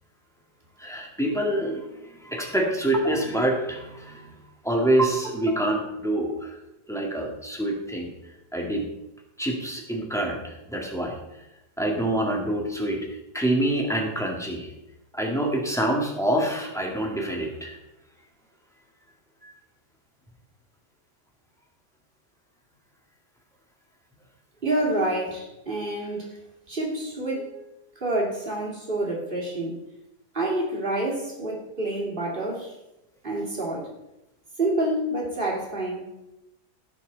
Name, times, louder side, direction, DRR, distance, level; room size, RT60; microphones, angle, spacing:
voice 1, 0.8-6.5 6.9-8.1 8.5-8.8 9.4-11.2 11.8-13.0 13.3-14.7 15.1-17.7 19.4-19.5, right 1 dB, ahead, -1 dB, 2.0 m, -26 dB
voice 2, 24.6-26.4 26.7-29.8 30.3-32.7 33.2-33.9 34.6-36.1, right 1 dB, 35° right, -3 dB, 2.8 m, -28 dB
17.0 x 6.3 x 4.0 m, 0.91 s
omnidirectional pair, 1.7 m